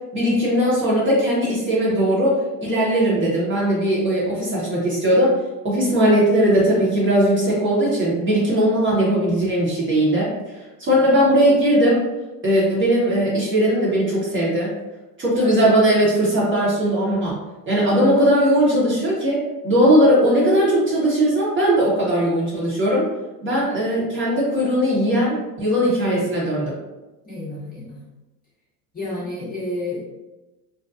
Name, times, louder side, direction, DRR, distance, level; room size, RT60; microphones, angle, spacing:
voice 1, 0.1-5.4 5.6-10.3 10.8-12.0 12.4-14.7 15.2-17.4 17.7-23.0 23.4-26.7, equal, 25° right, -5 dB, 0.9 m, -19 dB
voice 2, 27.3-28.0 28.9-30.0, left 1 dB, 20° left, -7 dB, 0.8 m, -30 dB
2.7 x 2.2 x 2.3 m, 1.1 s
hypercardioid pair, 75°, 49 cm